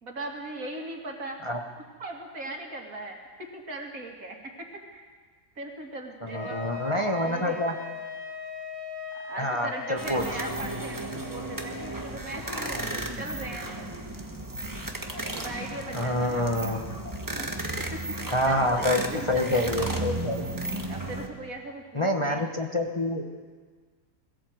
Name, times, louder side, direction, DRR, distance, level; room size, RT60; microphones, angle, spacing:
voice 1, 0.0-1.4 2.0-3.2 3.5-4.4 4.9-5.0 5.6-7.7 9.1-13.7 15.3-16.5 17.4-17.5 18.5-19.7 20.9-22.4, right 2 dB, 75° right, 1 dB, 3.0 m, -39 dB
voice 2, 6.2-7.8 9.4-10.2 15.9-16.8 18.3-20.4 21.9-23.2, left 1 dB, 25° left, 2 dB, 1.2 m, -27 dB
Wind instrument woodwind instrument, 6.3-10.2, left 4 dB, 60° left, 4.7 m, -38 dB
sound 1, 10.0-21.3, right 1 dB, 15° right, 1.5 m, -34 dB
21.0 x 16.5 x 7.9 m, 1.5 s
omnidirectional pair, 1.5 m